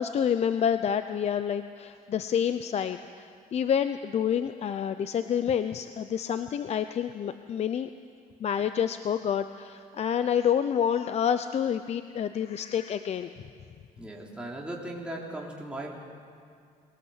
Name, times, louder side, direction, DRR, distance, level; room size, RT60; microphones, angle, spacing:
voice 1, 0.0-7.9 8.4-13.3, left 8 dB, 45° left, 10 dB, 0.7 m, -28 dB
voice 2, 14.0-15.9, right 1 dB, 5° right, -3 dB, 3.6 m, -37 dB
22.0 x 18.5 x 8.1 m, 2.2 s
cardioid pair, 115°, 16 cm